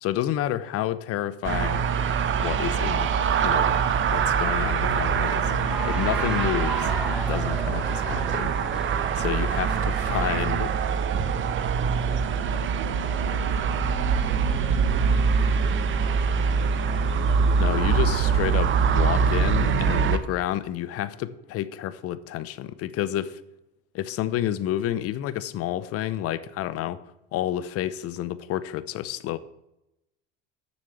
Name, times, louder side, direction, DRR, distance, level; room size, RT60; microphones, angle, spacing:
voice 1, 0.0-1.9 2.4-3.1 3.4-3.8 4.1-5.5 5.9-8.5 9.2-10.7 17.6-23.4 23.9-27.0 27.3-29.4, left 12 dB, 50° left, 0.7 m, -29 dB
sound 1, 1.4-20.2, right 6 dB, 40° right, 1.0 m, -24 dB
Cheering / Applause, 5.5-10.7, right 1 dB, 5° right, 1.0 m, -36 dB
voice 2, 9.5-9.9 10.4-18.4, right 6 dB, 80° right, 1.9 m, -45 dB
7.2 x 6.3 x 7.8 m
supercardioid pair, 95°, 31 cm